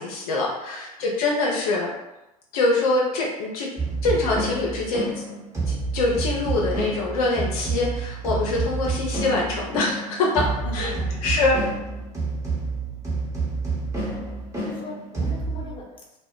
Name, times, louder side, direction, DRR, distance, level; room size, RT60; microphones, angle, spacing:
voice 1, 0.0-1.9 2.5-3.7 4.0-5.2 5.7-10.4 10.7-10.9 11.2-11.6, left 2 dB, 65° left, -2 dB, 0.6 m, -24 dB
sound 1, 3.8-15.6, right 3 dB, 15° right, 1.1 m, -29 dB
voice 2, 10.2-11.4 14.1-14.3 14.6-16.2, left 2 dB, 25° left, -3 dB, 0.8 m, -40 dB
2.1 x 2.0 x 3.6 m, 0.95 s
hypercardioid pair, 80°, 20 cm